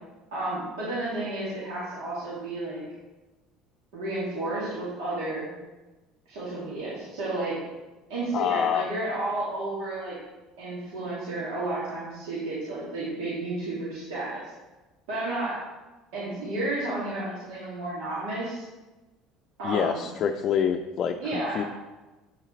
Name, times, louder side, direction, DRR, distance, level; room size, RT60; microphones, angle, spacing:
voice 1, 0.3-2.8 3.9-5.5 6.3-7.5 8.1-10.2 10.6-14.4 15.1-15.6 16.1-18.7 19.6-20.0 21.2-21.7, right 2 dB, 85° right, -9 dB, 2.3 m, -32 dB
voice 2, 8.3-8.9 19.6-21.6, left 8 dB, 50° left, 4 dB, 0.4 m, -26 dB
8.3 x 6.4 x 3.2 m, 1.2 s
supercardioid pair, 110°, 0 cm